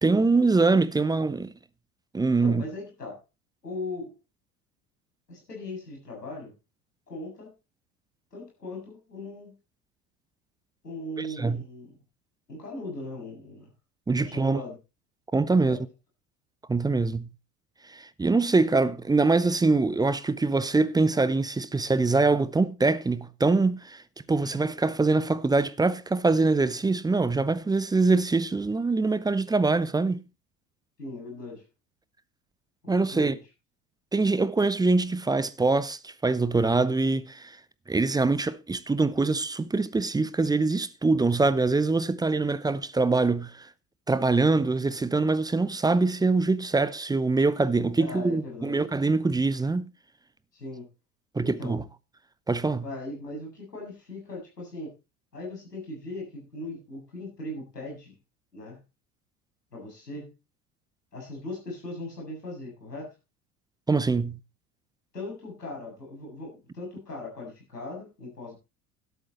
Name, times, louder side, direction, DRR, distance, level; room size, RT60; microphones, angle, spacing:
voice 1, 0.0-1.5 2.1-2.6 11.2-11.6 14.1-14.6 15.3-15.8 16.7-17.3 17.9-24.0 24.3-30.2 32.9-33.4 34.1-37.6 37.9-43.7 44.1-49.9 51.3-51.8 52.5-52.9 63.9-64.4, right 3 dB, 10° right, 0.7 m, -24 dB
voice 2, 2.4-3.2 3.6-4.1 5.3-6.5 7.1-7.5 8.3-9.5 10.8-12.0 12.5-13.7 14.1-14.8 15.5-15.8 24.4-24.7 31.0-31.6 32.8-33.4 48.0-48.8 50.5-50.9 51.4-51.8 52.8-54.9 55.3-58.2 58.5-58.8 59.7-60.3 61.1-63.1 65.1-68.6, left 2 dB, 80° left, 7.7 m, -39 dB
12.5 x 11.5 x 4.4 m
figure-of-eight pair, 70°, 48 cm